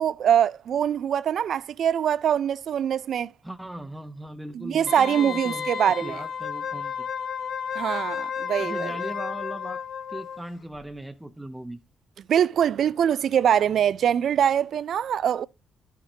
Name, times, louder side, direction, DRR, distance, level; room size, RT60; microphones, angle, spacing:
voice 1, 0.0-3.3 4.5-6.2 7.7-8.9 12.3-15.5, right 9 dB, 65° right, 0.3 m, -23 dB
voice 2, 3.4-7.1 8.6-9.8 10.1-11.8, right 1 dB, 5° right, 0.6 m, -38 dB
Wind instrument woodwind instrument, 4.9-10.4 10.7-10.8, left 7 dB, 60° left, 1.2 m, -32 dB
11.0 x 5.9 x 2.8 m
cardioid pair, 90°, 0 cm